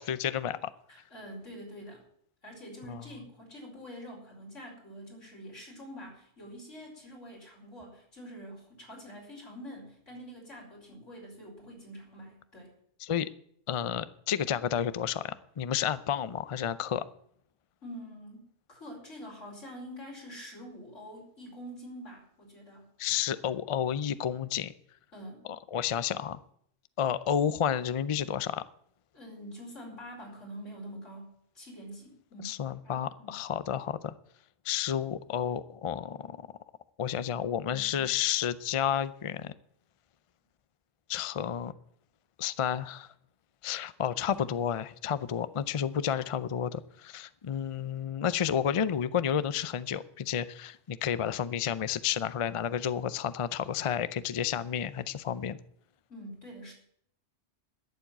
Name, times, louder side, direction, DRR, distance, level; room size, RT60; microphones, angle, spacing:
voice 1, 0.0-0.7 2.9-3.0 13.0-13.3 13.7-17.0 23.0-24.7 25.7-26.4 27.0-28.6 32.4-34.1 34.6-36.4 37.0-39.5 41.1-41.7 42.4-43.1 43.6-55.6, left 9 dB, 55° left, 15 dB, 0.3 m, -31 dB
voice 2, 0.9-2.0 2.4-12.7 17.8-22.9 25.1-25.5 29.1-32.6 32.8-33.4 37.7-38.1 44.4-44.5 56.1-56.7, equal, 75° left, -1 dB, 5.3 m, -46 dB
12.5 x 7.3 x 9.0 m, 0.67 s
omnidirectional pair, 1.3 m